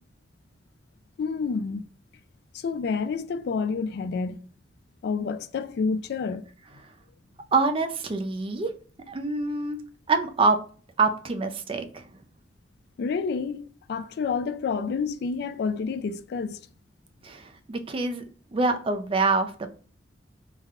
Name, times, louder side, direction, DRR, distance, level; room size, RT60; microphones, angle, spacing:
voice 1, 1.2-1.9 2.5-4.4 5.0-6.4 13.0-16.7, left 5 dB, 60° left, 0.3 m, -29 dB
voice 2, 7.5-8.7 9.1-9.8 10.1-10.6 11.0-12.0 17.2-18.2 18.5-19.7, right 3 dB, 30° right, 0.4 m, -25 dB
3.3 x 2.1 x 3.5 m
head